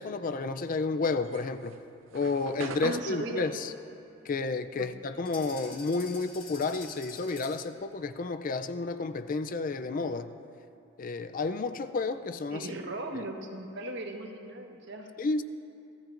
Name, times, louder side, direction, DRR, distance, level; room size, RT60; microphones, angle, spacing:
voice 1, 0.0-1.8 2.1-3.7 4.3-10.4 11.0-12.7 13.1-13.2 15.2-15.4, left 3 dB, 45° left, 10 dB, 0.4 m, -31 dB
sound 1, 1.2-5.9 6.2-8.2, right 4 dB, 85° right, 0.7 m, -43 dB
voice 2, 2.8-3.5 4.8-4.9 5.2-5.3 12.5-15.1, right 2 dB, 60° right, 2 dB, 1.3 m, -38 dB
sound 2, 5.2-7.7, left 4 dB, 30° left, 3.9 m, -47 dB
25.5 x 16.0 x 2.6 m, 2.6 s
head